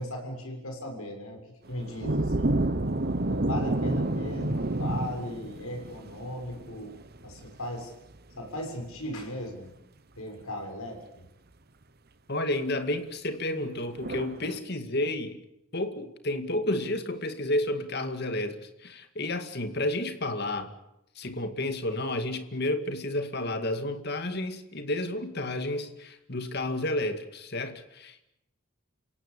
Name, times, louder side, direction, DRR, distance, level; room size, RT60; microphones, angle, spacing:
voice 1, 0.0-1.4 1.7-2.5 3.2-6.9 7.2-7.9 8.4-9.7 10.2-11.2, left 1 dB, 75° left, 3 dB, 6.6 m, -37 dB
sound 1, 1.7-7.5 14.0-14.6, right 1 dB, 45° right, 1.0 m, -29 dB
voice 2, 12.3-15.4 15.7-20.7 21.2-28.2, left 1 dB, 45° left, 8 dB, 2.2 m, -31 dB
28.5 x 17.5 x 8.5 m, 0.85 s
head